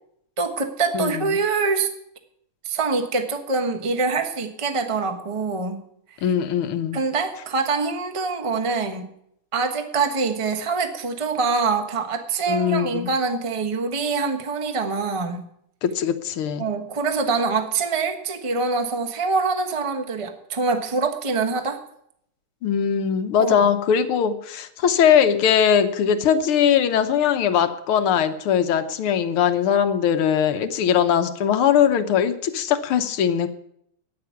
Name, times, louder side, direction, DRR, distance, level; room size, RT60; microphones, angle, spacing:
voice 1, 0.4-1.9 2.6-5.8 6.9-9.1 9.5-15.4 16.6-21.8 23.4-23.7, right 4 dB, 20° right, 5 dB, 1.0 m, -24 dB
voice 2, 0.9-1.4 6.2-7.0 12.5-13.1 15.8-16.7 22.6-33.5, left 8 dB, 80° left, 9 dB, 1.9 m, -20 dB
14.0 x 9.9 x 5.8 m, 0.71 s
omnidirectional pair, 2.4 m